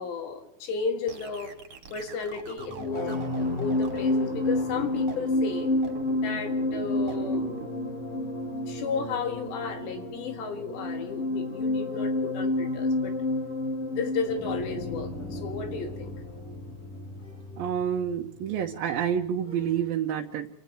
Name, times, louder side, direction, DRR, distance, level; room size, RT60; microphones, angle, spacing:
voice 1, 0.0-1.5 1.9-5.7 6.1-7.5 8.7-13.2 13.9-16.1, left 5 dB, 75° left, 5 dB, 4.0 m, -33 dB
sound 1, 1.1-7.7, right 6 dB, 40° right, 3.3 m, -41 dB
sound 2, 2.6-19.2 19.5-19.8, left 2 dB, 50° left, 8.8 m, -30 dB
voice 2, 17.6-20.5, right 9 dB, 65° right, -1 dB, 2.6 m, -28 dB
29.5 x 27.0 x 3.3 m, 0.73 s
omnidirectional pair, 5.2 m